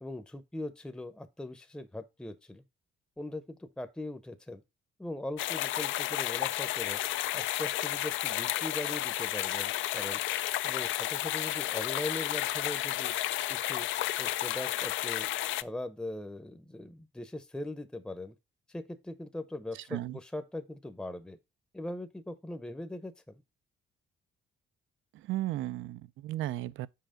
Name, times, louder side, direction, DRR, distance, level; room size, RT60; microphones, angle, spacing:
voice 1, 0.0-2.6 3.2-4.6 5.0-7.0 7.3-10.2 10.6-13.1 13.5-13.9 14.2-15.3 15.6-18.3 18.7-21.4 21.7-23.4, left 1 dB, 5° left, 0.7 m, -40 dB
sound 1, 5.4-15.6, left 14 dB, 75° left, 0.4 m, -32 dB
voice 2, 19.7-20.2 25.1-26.9, right 15 dB, 85° right, 0.4 m, -35 dB
5.7 x 4.8 x 5.0 m
cardioid pair, 90°, 20 cm